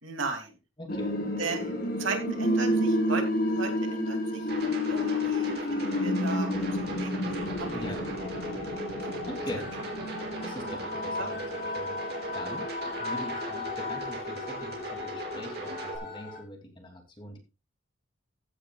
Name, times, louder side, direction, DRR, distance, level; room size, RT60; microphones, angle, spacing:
voice 1, 0.0-0.5 1.4-7.8 8.1-8.2 9.0-9.1 11.2-11.3, right 3 dB, 75° right, 3 dB, 2.8 m, -36 dB
voice 2, 0.8-1.1 7.7-8.0 9.3-9.7 10.4-12.7 13.0-17.4, left 1 dB, 25° left, 2 dB, 2.8 m, -42 dB
sound 1, 0.9-16.4, left 1 dB, 45° left, 2.1 m, -31 dB
sound 2, 4.5-16.0, right 2 dB, 50° right, 3.3 m, -38 dB
15.0 x 9.6 x 2.4 m, 0.29 s
head